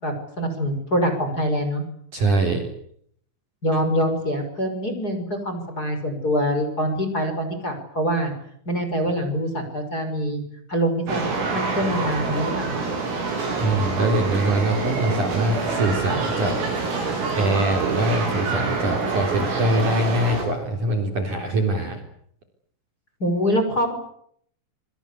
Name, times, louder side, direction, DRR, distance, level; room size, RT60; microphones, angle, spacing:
voice 1, 0.0-1.8 3.6-8.3 8.7-10.4 10.7-12.8 23.2-23.9, equal, 20° left, 6 dB, 5.8 m, -24 dB
voice 2, 2.1-2.7 13.6-16.6 17.4-22.0, right 1 dB, 40° right, 4 dB, 4.5 m, -23 dB
sound 1, 11.1-20.4, right 4 dB, 90° right, 9.6 m, -26 dB
26.5 x 24.0 x 8.4 m, 0.67 s
omnidirectional pair, 5.9 m